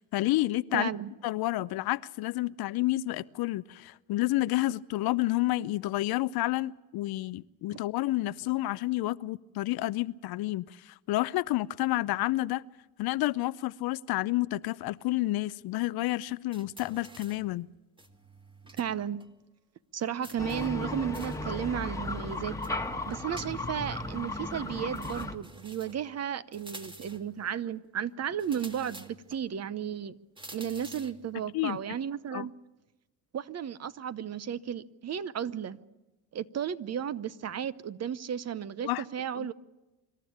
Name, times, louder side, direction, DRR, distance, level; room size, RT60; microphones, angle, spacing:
voice 1, 0.0-0.9 1.2-12.6 13.0-17.7 31.5-31.8 32.3-32.5 38.8-39.0 39.4-39.5, left 17 dB, 60° left, 0.6 m, -30 dB
voice 2, 0.7-1.1 7.7-7.8 18.8-19.2 19.9-22.5 23.1-30.1 30.5-32.5 33.3-35.8 36.3-39.5, right 8 dB, 35° right, 0.8 m, -34 dB
sound 1, 16.5-17.5 18.0-18.9 19.2-19.3 20.2-21.5 22.6-23.9 24.9-26.1 26.5-27.3 28.4-29.4 30.4-31.2, right 2 dB, 10° right, 1.8 m, -49 dB
sound 2, 20.4-25.4, left 2 dB, 5° left, 1.4 m, -35 dB
26.0 x 12.5 x 8.7 m
supercardioid pair, 85°, 42 cm